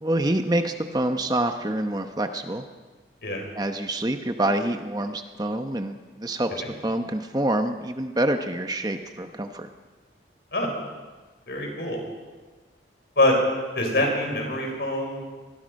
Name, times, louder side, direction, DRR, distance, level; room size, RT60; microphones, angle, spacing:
voice 1, 0.0-2.6 3.6-6.5 6.8-9.7, right 1 dB, 20° right, 6 dB, 0.9 m, -26 dB
voice 2, 11.5-12.0 13.2-13.4 13.8-15.2, left 1 dB, 60° left, 2 dB, 5.5 m, -24 dB
24.5 x 20.0 x 5.4 m, 1.3 s
head